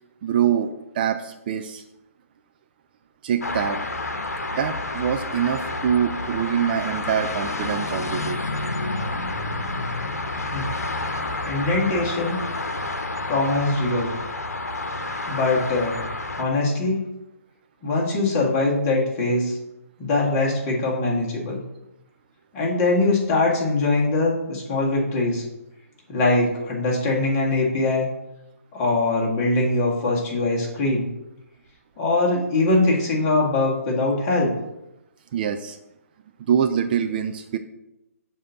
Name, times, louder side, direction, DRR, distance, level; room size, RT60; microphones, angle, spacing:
voice 1, 0.2-1.8 3.2-3.8 4.5-8.4 35.3-35.8 36.4-37.6, right 8 dB, 35° right, 7 dB, 0.4 m, -24 dB
sound 1, 3.4-16.4, left 2 dB, 90° left, 0.8 m, -29 dB
voice 2, 11.4-12.4 13.3-14.1 15.3-16.0 16.4-17.0 17.8-19.6 20.0-21.6 22.5-25.4 26.1-28.0 28.7-31.1 32.0-34.5, left 2 dB, 25° left, -3 dB, 1.7 m, -22 dB
7.1 x 2.8 x 5.6 m, 0.93 s
hypercardioid pair, 145°, 8 cm